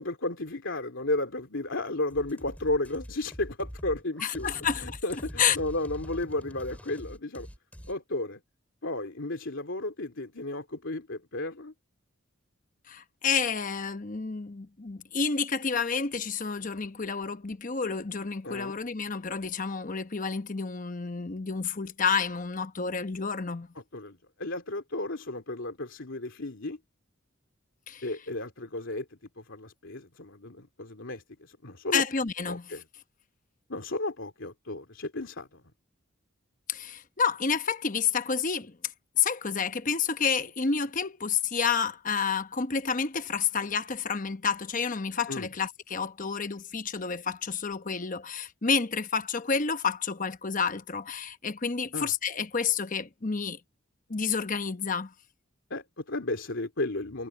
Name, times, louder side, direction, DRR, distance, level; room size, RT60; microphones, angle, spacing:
voice 1, 0.0-4.5 4.8-7.5 7.9-8.4 8.8-11.7 18.4-18.8 23.9-26.8 28.0-29.1 29.4-32.0 32.5-32.8 33.7-35.6 45.3-45.5 51.9-52.1 55.7-57.3, left 2 dB, 70° left, 2.9 m, -33 dB
sound 1, 2.1-7.9, equal, 5° left, 2.9 m, -44 dB
voice 2, 4.2-5.6 12.9-23.7 27.9-28.0 31.9-32.7 36.7-38.8 39.2-53.6 54.1-55.1, left 6 dB, 40° left, 0.9 m, -29 dB
head